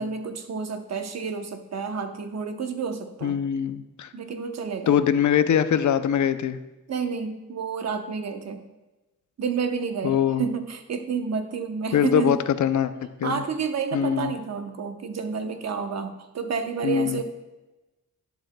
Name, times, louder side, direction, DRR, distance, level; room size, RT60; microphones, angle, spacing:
voice 1, 0.0-3.4 4.1-5.0 6.9-8.6 9.4-12.4 13.2-17.2, right 5 dB, 50° right, 7 dB, 0.9 m, -30 dB
voice 2, 3.2-4.1 4.9-6.6 10.0-10.4 11.9-12.9 13.2-13.4 13.9-14.3 16.8-17.2, left 9 dB, 60° left, 12 dB, 0.5 m, -22 dB
11.5 x 10.5 x 2.2 m, 1.1 s
wide cardioid pair, 140°, 33 cm